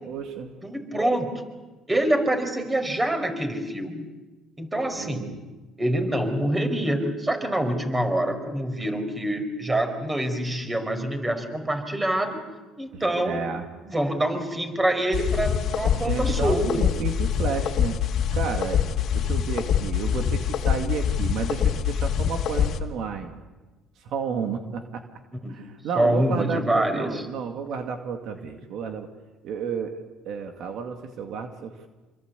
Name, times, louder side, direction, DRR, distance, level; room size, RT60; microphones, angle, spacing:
voice 1, 0.1-0.5 4.9-5.4 12.9-13.7 16.0-18.0 18.3-18.9 19.1-23.3 24.0-25.0 25.5-29.1 29.4-31.9, right 6 dB, 65° right, 5 dB, 2.2 m, -32 dB
voice 2, 0.6-1.4 1.9-4.1 4.6-5.3 5.8-12.4 12.8-13.4 13.9-16.8 25.4-25.5 25.9-27.3, right 1 dB, 15° right, 7 dB, 4.9 m, -25 dB
sound 1, 15.1-22.8, left 8 dB, 60° left, 2.3 m, -25 dB
27.0 x 23.5 x 8.3 m, 1.2 s
cardioid pair, 100°, 0 cm